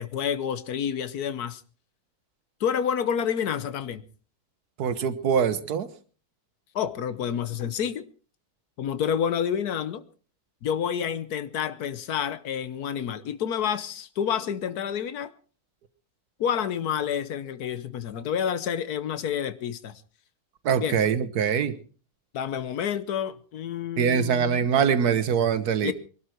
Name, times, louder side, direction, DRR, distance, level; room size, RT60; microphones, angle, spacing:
voice 1, 0.0-1.6 2.6-4.0 6.7-8.0 8.8-10.0 10.6-15.3 16.4-19.9 20.8-21.0 22.3-24.7 25.8-25.9, left 8 dB, 85° left, 13 dB, 1.5 m, -29 dB
voice 2, 4.8-5.9 20.6-21.8 24.0-25.9, right 7 dB, 85° right, 13 dB, 1.6 m, -23 dB
23.0 x 12.5 x 4.5 m, 0.40 s
omnidirectional pair, 1.6 m